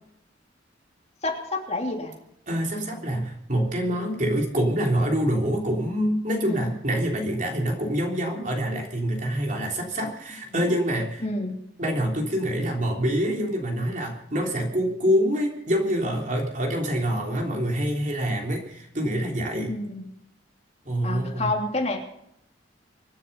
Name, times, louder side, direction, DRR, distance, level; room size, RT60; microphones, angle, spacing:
voice 1, 1.2-2.1 6.4-6.7 10.5-10.6 11.2-11.6 19.7-20.1 21.0-22.0, left 2 dB, 35° left, 1 dB, 3.1 m, -29 dB
voice 2, 2.5-11.2 11.8-19.7 20.8-21.5, equal, 40° right, 1 dB, 3.4 m, -26 dB
25.0 x 9.8 x 5.5 m, 0.74 s
head